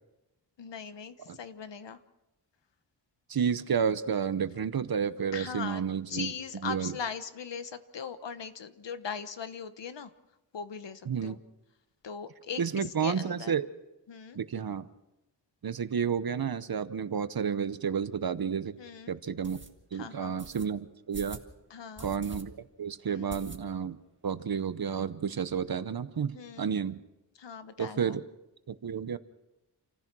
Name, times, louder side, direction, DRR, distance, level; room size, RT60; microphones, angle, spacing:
voice 1, 0.6-2.0 5.3-5.8 6.1-10.1 10.5-11.4 12.0-13.6 14.1-14.4 18.8-19.1 19.9-20.4 21.7-22.1 23.1-23.4 26.3-26.7 27.4-28.2, left 6 dB, 80° left, 11 dB, 1.2 m, -40 dB
voice 2, 3.3-6.3 6.6-7.0 11.1-11.4 12.6-13.7 14.3-14.9 15.6-18.8 19.1-19.6 19.9-21.4 22.0-24.0 24.2-27.0 27.8-28.2 28.7-29.2, right 7 dB, 55° right, 13 dB, 0.9 m, -31 dB
sound 1, 18.0-18.1 18.6-18.7 19.4-19.7 20.4-20.7 21.1-21.5 22.0-22.4 22.7-22.8 23.3-23.9 24.3-24.4 24.6-24.7 25.0-25.6, right 2 dB, 25° right, 1.8 m, -45 dB
28.0 x 15.0 x 6.1 m, 0.98 s
wide cardioid pair, 105°, 42 cm